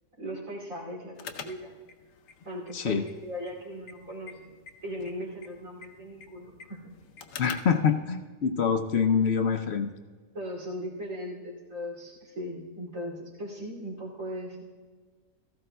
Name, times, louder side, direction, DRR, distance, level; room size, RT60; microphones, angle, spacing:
voice 1, 0.2-1.7 2.4-4.5 4.8-6.8 10.3-14.7, equal, 80° right, -4 dB, 3.1 m, -38 dB
sound 1, 1.1-7.8, left 6 dB, 80° left, 1.1 m, -48 dB
voice 2, 7.4-9.9, left 6 dB, 60° left, 6 dB, 0.8 m, -25 dB
16.5 x 14.0 x 2.2 m, 1.5 s
omnidirectional pair, 1.4 m